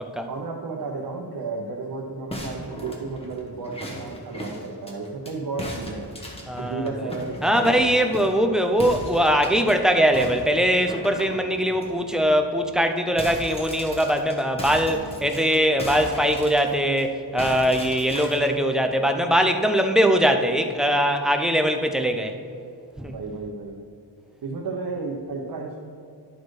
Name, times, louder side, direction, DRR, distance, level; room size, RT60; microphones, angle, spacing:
voice 1, 0.3-6.1 6.6-8.0 14.6-15.2 23.1-23.9 24.4-25.8, right 4 dB, 65° right, -1 dB, 0.9 m, -33 dB
sound 1, 2.3-5.3 5.6-8.4 8.8-9.7 10.1-11.9 12.3-12.4 12.7-17.0 17.4-18.5, equal, 15° left, 1.1 m, -37 dB
voice 2, 6.5-6.9 7.4-22.3 23.0-23.1, equal, ahead, 5 dB, 0.4 m, -21 dB
11.0 x 4.3 x 4.7 m, 2.5 s
wide cardioid pair, 175°, 40 cm